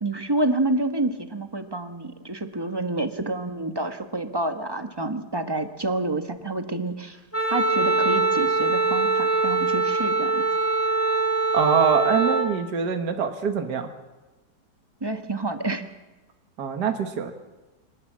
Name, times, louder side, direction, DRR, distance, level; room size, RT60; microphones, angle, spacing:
voice 1, 0.0-7.2 7.5-10.4 15.0-15.8, right 2 dB, 15° right, 6 dB, 1.3 m, -28 dB
Wind instrument woodwind instrument, 7.3-12.5, right 3 dB, 10° left, 2.9 m, -23 dB
voice 2, 11.5-13.9 16.6-17.3, right 7 dB, 70° right, 5 dB, 1.9 m, -24 dB
24.5 x 19.0 x 7.5 m, 1.2 s
omnidirectional pair, 1.8 m